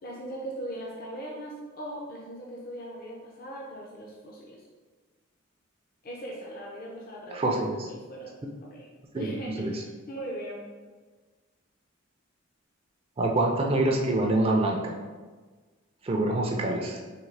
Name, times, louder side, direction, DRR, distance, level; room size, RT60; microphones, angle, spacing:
voice 1, 0.0-4.6 6.0-8.3 8.6-8.9 9.1-10.6, right 1 dB, 45° left, -2 dB, 0.5 m, -39 dB
voice 2, 7.3-7.8 9.1-9.3 9.6-9.7 13.2-15.0 16.0-17.0, right 2 dB, 30° right, 0 dB, 0.4 m, -25 dB
3.7 x 2.7 x 3.2 m, 1.4 s
head